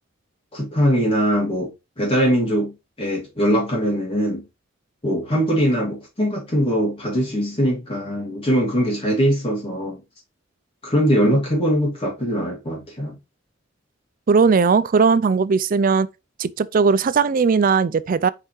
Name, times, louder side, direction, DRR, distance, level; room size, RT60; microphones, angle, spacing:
voice 1, 0.5-1.7 2.0-4.4 5.0-10.0 10.8-13.2, equal, 30° left, 2.8 m, -21 dB
voice 2, 14.3-16.1 16.4-18.3, right 5 dB, 45° right, 0.4 m, -18 dB
5.8 x 5.4 x 3.1 m
head